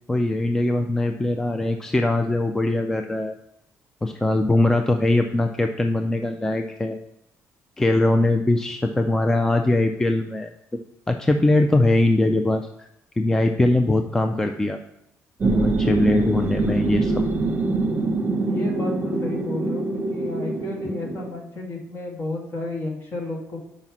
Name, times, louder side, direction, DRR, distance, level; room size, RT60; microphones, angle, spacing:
voice 1, 0.1-3.3 4.0-7.0 7.8-10.5 11.1-12.9 13.2-14.8 15.4-17.3, left 2 dB, 10° left, 5 dB, 0.3 m, -21 dB
sound 1, 15.4-21.3, right 3 dB, 30° right, 0.9 m, -24 dB
voice 2, 18.5-23.6, left 2 dB, 45° left, -1 dB, 1.8 m, -32 dB
5.5 x 4.9 x 5.9 m, 0.80 s
cardioid pair, 165°, 6 cm